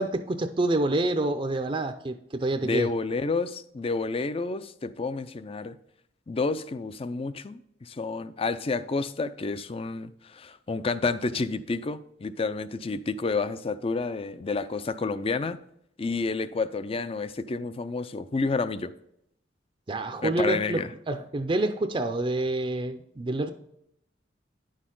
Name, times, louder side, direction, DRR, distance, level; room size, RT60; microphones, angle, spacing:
voice 1, 0.0-2.9 19.9-23.5, right 2 dB, 30° right, 0.5 m, -27 dB
voice 2, 2.6-5.8 6.3-15.6 16.0-18.9 20.2-20.9, left 3 dB, 30° left, 0.4 m, -30 dB
10.0 x 6.4 x 3.8 m
head